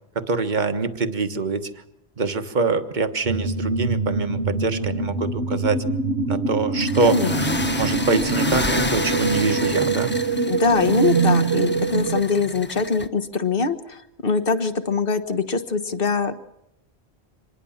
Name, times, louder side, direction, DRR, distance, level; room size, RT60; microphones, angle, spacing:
voice 1, 0.1-1.7 2.2-5.8 6.3-7.2 7.8-10.1, right 4 dB, 45° right, 8 dB, 1.5 m, -24 dB
sound 1, 3.2-12.2, right 4 dB, 80° right, 1.5 m, -24 dB
sound 2, 6.8-13.1, left 2 dB, 10° left, 0.7 m, -30 dB
voice 2, 7.0-7.4 10.5-16.3, left 4 dB, 60° left, 11 dB, 1.5 m, -23 dB
26.0 x 20.5 x 7.3 m, 0.81 s
omnidirectional pair, 1.1 m